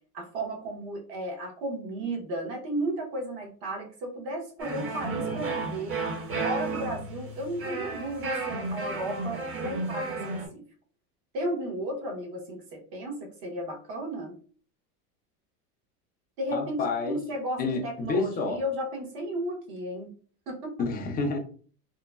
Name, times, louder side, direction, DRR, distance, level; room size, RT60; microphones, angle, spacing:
voice 1, 0.1-6.0 6.4-10.6 11.3-14.4 16.4-20.1 20.5-20.8, right 1 dB, 50° right, 1 dB, 1.2 m, -34 dB
sound 1, 4.6-10.5, right 3 dB, 30° right, 0.9 m, -33 dB
voice 2, 16.5-17.2 17.6-18.6 20.8-21.4, left 3 dB, 20° left, 3 dB, 0.5 m, -29 dB
2.9 x 2.2 x 2.3 m, 0.42 s
supercardioid pair, 115°, 47 cm